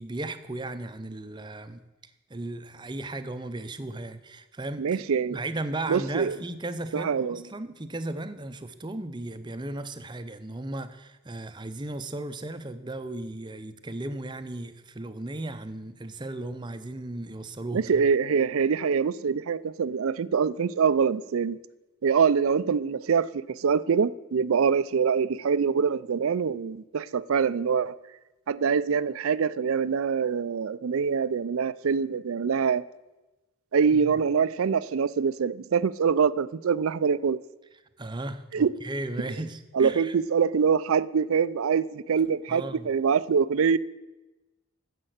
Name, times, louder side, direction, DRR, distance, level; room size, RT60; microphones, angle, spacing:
voice 1, 0.0-1.8 2.3-5.0 5.3-17.8 33.9-34.1 38.0-40.1 42.5-42.9, right 2 dB, 20° right, 0.6 m, -36 dB
voice 2, 4.8-5.4 5.9-6.4 6.9-7.4 17.7-21.6 22.0-28.0 28.5-32.8 33.7-37.4 38.5-38.7 39.7-43.8, right 6 dB, 65° right, 0.4 m, -24 dB
9.9 x 7.5 x 8.1 m
head